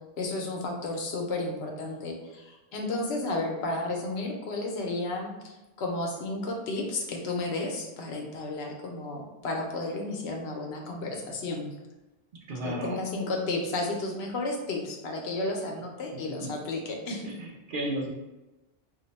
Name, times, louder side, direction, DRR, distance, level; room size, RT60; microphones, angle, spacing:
voice 1, 0.2-11.7 12.6-17.3, left 2 dB, 85° left, 1 dB, 0.9 m, -32 dB
voice 2, 12.5-13.0 16.1-16.5 17.2-18.1, right 1 dB, 60° right, -2 dB, 0.7 m, -34 dB
2.6 x 2.1 x 3.9 m, 1.0 s
omnidirectional pair, 1.1 m